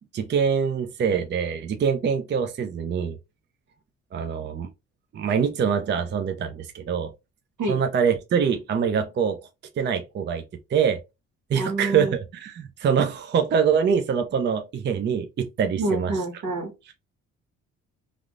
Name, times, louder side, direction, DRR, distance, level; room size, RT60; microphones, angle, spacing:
voice 1, 0.1-3.2 4.1-4.7 5.1-7.1 7.7-9.4 9.8-10.4 10.7-11.0 11.5-16.1, right 7 dB, 35° right, 0.4 m, -24 dB
voice 2, 11.5-12.1 15.8-16.7, right 2 dB, 85° right, 1.3 m, -27 dB
3.4 x 2.4 x 2.4 m
cardioid pair, 90°, 30 cm